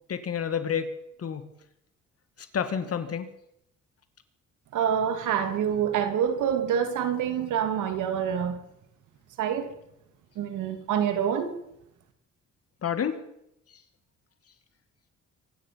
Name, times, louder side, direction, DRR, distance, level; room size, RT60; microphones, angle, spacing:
voice 1, 0.1-0.9 1.2-1.5 2.4-3.3 12.8-13.3, left 7 dB, 50° left, 10 dB, 2.0 m, -29 dB
voice 2, 4.7-8.6 9.4-9.7 10.4-11.6, right 8 dB, 85° right, 7 dB, 2.3 m, -26 dB
24.5 x 9.8 x 5.8 m, 0.80 s
cardioid pair, 90°, 30 cm